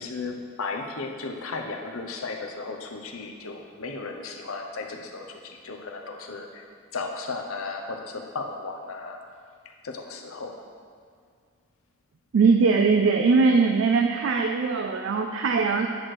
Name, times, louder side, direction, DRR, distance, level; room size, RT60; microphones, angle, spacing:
voice 1, 0.0-6.6 6.9-9.2 9.8-10.5, left 3 dB, 70° left, 3 dB, 0.7 m, -35 dB
voice 2, 12.3-15.9, right 4 dB, 55° right, 4 dB, 0.3 m, -21 dB
9.6 x 3.2 x 6.1 m, 2.2 s
head